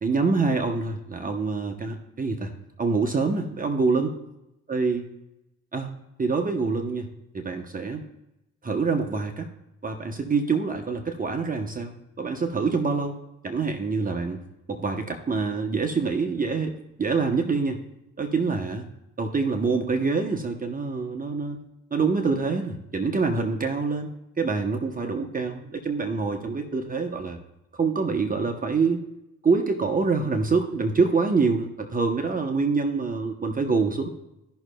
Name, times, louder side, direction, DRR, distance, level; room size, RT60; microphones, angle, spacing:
voice 1, 0.0-2.5 2.8-4.2 4.7-5.0 5.7-5.9 6.2-7.1 7.3-8.0 8.6-9.5 9.8-13.2 13.4-14.4 14.7-16.7 17.0-17.8 18.2-18.9 19.2-21.6 21.9-27.4 27.7-29.0 29.4-34.1, right 4 dB, 30° right, 5 dB, 0.8 m, -25 dB
15.0 x 6.0 x 2.2 m, 0.90 s
cardioid pair, 90°, 30 cm